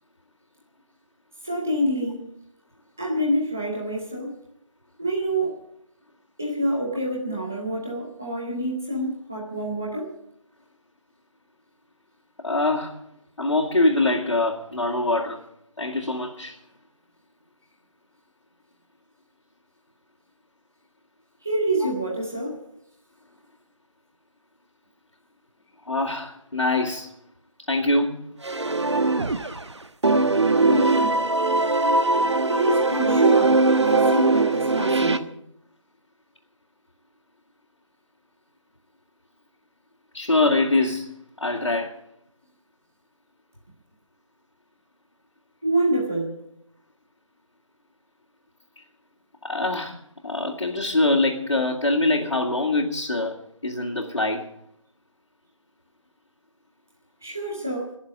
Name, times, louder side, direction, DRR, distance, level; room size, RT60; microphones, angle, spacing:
voice 1, 1.4-2.2 3.0-4.3 5.0-5.6 6.4-10.1 21.4-22.6 30.5-31.1 32.5-35.2 45.6-46.4 57.2-58.0, right 1 dB, 5° right, -3 dB, 0.6 m, -27 dB
voice 2, 12.4-13.0 13.4-15.4 15.8-16.6 21.8-21.9 25.9-27.1 27.7-28.2 33.2-33.3 40.1-41.1 41.4-41.9 49.4-49.9 50.2-53.4 53.6-54.5, left 2 dB, 65° left, -3 dB, 2.8 m, -23 dB
sound 1, 28.4-29.7 30.0-35.2, right 3 dB, 60° right, 1.3 m, -20 dB
21.0 x 7.3 x 9.4 m, 0.75 s
figure-of-eight pair, 170°, 17 cm